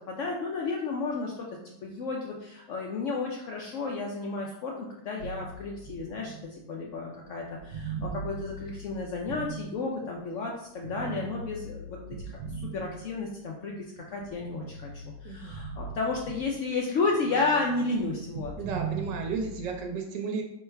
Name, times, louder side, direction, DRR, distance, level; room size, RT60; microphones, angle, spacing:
voice 1, 0.1-12.0 12.2-18.5, left 3 dB, 80° left, -1 dB, 0.6 m, -32 dB
sound 1, 5.2-10.3 10.8-13.5 14.0-16.8 17.1-19.8, right 4 dB, 70° right, 0.7 m, -40 dB
voice 2, 15.2-15.5 18.6-20.4, right 5 dB, 85° right, 2 dB, 1.2 m, -33 dB
3.4 x 2.2 x 4.4 m, 0.81 s
omnidirectional pair, 1.8 m